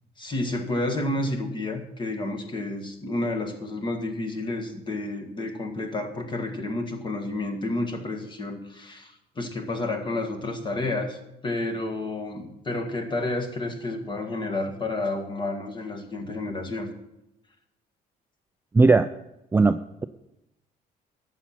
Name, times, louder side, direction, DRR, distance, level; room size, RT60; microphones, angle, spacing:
voice 1, 0.2-11.2 11.4-16.9, left 2 dB, 30° left, 4 dB, 1.7 m, -30 dB
voice 2, 18.7-19.1 19.5-20.0, right 3 dB, 15° right, 10 dB, 0.3 m, -18 dB
11.5 x 7.2 x 6.0 m, 0.88 s
cardioid pair, 110°, 17 cm